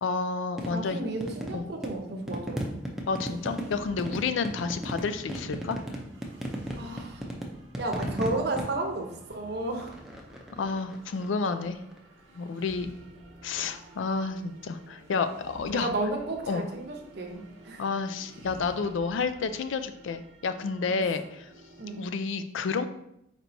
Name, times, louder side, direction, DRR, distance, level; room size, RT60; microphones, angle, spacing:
voice 1, 0.0-1.0 1.5-1.7 3.1-5.8 10.5-11.8 12.3-12.9 13.4-15.9 16.5-16.6 17.8-21.5 22.0-22.9, left 4 dB, 70° left, 10 dB, 0.4 m, -30 dB
sound 1, 0.6-12.0 13.7-14.1 17.3-17.4, equal, ahead, 0.5 m, -37 dB
voice 2, 0.7-2.8 6.7-7.3 7.8-9.9 15.7-17.8 20.9-21.0 21.8-22.0, right 2 dB, 55° right, 2 dB, 0.7 m, -33 dB
sound 2, 3.3-22.1, right 1 dB, 85° right, 0.8 m, -52 dB
4.5 x 4.3 x 2.6 m, 0.78 s
head